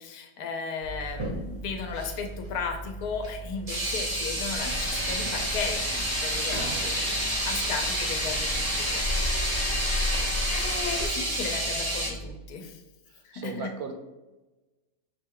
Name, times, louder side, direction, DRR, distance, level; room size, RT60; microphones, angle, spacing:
voice 1, 0.0-7.0 7.4-9.1 10.5-12.8 13.2-13.7, left 5 dB, 80° left, 4 dB, 1.1 m, -35 dB
sound 1, 0.8-12.3, right 1 dB, 55° left, 1.0 m, -40 dB
sound 2, 1.1-1.4 1.9-2.1 3.2-3.3 3.7-12.1, right 1 dB, 30° right, 0.6 m, -30 dB
sound 3, 4.5-11.1, left 2 dB, 30° left, 0.5 m, -32 dB
voice 2, 6.6-7.3 13.1-13.9, right 5 dB, 75° right, 5 dB, 1.0 m, -39 dB
5.6 x 2.2 x 3.6 m, 1.1 s
omnidirectional pair, 1.6 m